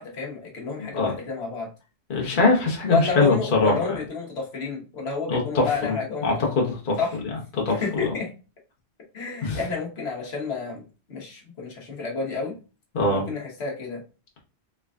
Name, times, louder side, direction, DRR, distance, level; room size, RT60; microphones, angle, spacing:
voice 1, 0.0-1.7 2.9-6.3 7.0-7.2 7.7-8.3 9.1-12.5 13.1-14.0, left 4 dB, 75° left, -1 dB, 1.3 m, -30 dB
voice 2, 2.1-4.0 5.3-6.0 6.2-7.0 7.5-7.8 9.4-9.6 12.9-13.2, left 3 dB, 55° left, -1 dB, 1.1 m, -22 dB
3.8 x 3.3 x 2.3 m, 0.32 s
omnidirectional pair, 1.1 m